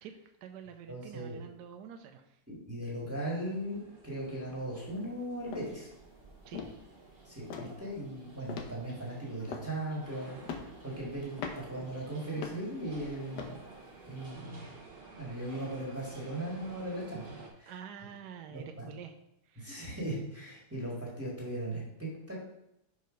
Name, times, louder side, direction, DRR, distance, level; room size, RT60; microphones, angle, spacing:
voice 1, 0.0-2.4 6.5-6.6 17.7-19.1 19.4-19.9, right 8 dB, 75° right, 6 dB, 1.1 m, -47 dB
voice 2, 0.9-1.4 2.5-5.9 7.3-10.4 10.8-13.6 14.1-14.7 15.2-17.7 18.5-18.9 19.6-22.4, right 1 dB, 10° right, -5 dB, 1.8 m, -38 dB
sound 1, 3.4-17.5, right 3 dB, 40° right, 1.2 m, -52 dB
sound 2, 4.8-5.1 5.5-5.8 6.2-6.3 6.5-7.1 7.5-7.8 8.5-9.0 9.4-10.0 10.4-10.8 11.4-11.8 12.4-12.7 13.3-13.6 14.2-14.3, left 6 dB, 80° left, 1.4 m, -41 dB
5.6 x 4.8 x 5.2 m, 0.81 s
omnidirectional pair, 1.9 m